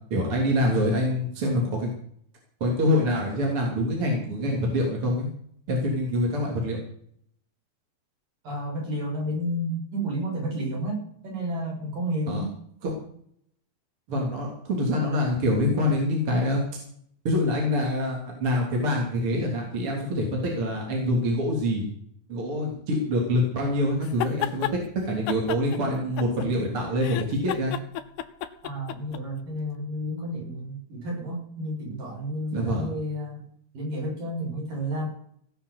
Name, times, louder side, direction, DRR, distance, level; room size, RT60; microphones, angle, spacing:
voice 1, 0.1-1.9 2.6-5.3 5.7-6.8 12.3-12.4 12.8-12.9 14.1-16.6 17.2-21.9 22.3-24.7 25.1-27.7 32.5-32.9, left 1 dB, 35° right, -1 dB, 3.8 m, -25 dB
voice 2, 8.4-12.5 28.6-33.5 33.7-35.1, equal, 60° right, -2 dB, 8.5 m, -31 dB
sound 1, 24.0-24.8 25.3-26.7 27.0-29.2, left 12 dB, 90° left, 2.8 m, -31 dB
18.0 x 6.8 x 8.2 m, 0.66 s
omnidirectional pair, 4.4 m